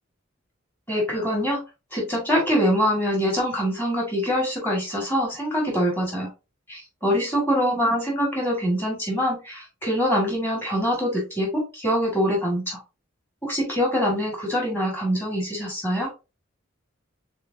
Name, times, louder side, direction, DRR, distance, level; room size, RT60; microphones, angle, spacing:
voice 1, 0.9-1.6 1.9-6.3 6.7-12.8 13.4-16.1, equal, 10° left, -1 dB, 2.0 m, -24 dB
4.9 x 3.9 x 2.7 m, 0.27 s
head